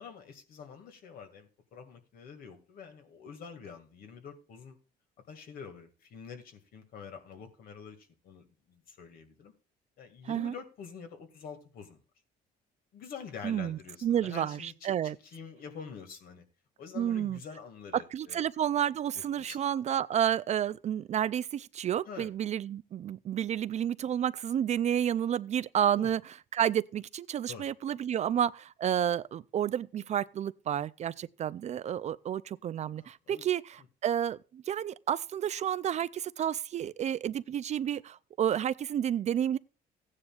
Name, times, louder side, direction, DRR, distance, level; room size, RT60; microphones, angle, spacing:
voice 1, 0.0-4.8 5.3-9.5 10.0-12.0 12.9-16.4 16.8-18.4 19.1-19.6 22.1-22.3 26.0-26.1 27.5-27.7 33.0-33.4, left 6 dB, 60° left, 2.1 m, -47 dB
voice 2, 13.4-15.2 17.0-17.4 17.9-39.6, right 10 dB, 45° right, 0.4 m, -30 dB
15.5 x 9.7 x 2.4 m
cardioid pair, 110°, 17 cm